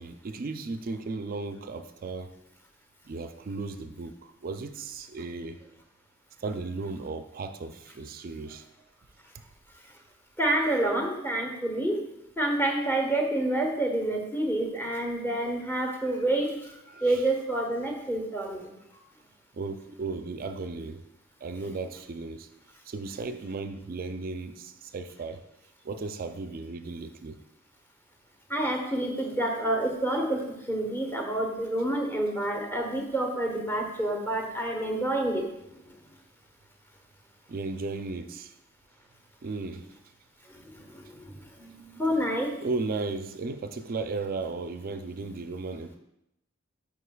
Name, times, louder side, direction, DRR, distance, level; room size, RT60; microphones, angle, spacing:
voice 1, 0.0-2.3 3.1-5.6 6.4-8.6 9.3-9.4 16.9-17.2 19.5-21.0 21.4-22.5 22.9-25.4 25.8-27.4 37.5-38.5 39.4-39.9 42.6-46.0, right 3 dB, 45° right, 9 dB, 0.4 m, -35 dB
voice 2, 10.4-12.0 12.4-16.5 17.0-18.7 28.5-30.4 30.7-35.4 40.5-42.5, right 1 dB, 10° left, 1 dB, 0.9 m, -28 dB
8.0 x 5.0 x 2.3 m, 0.84 s
head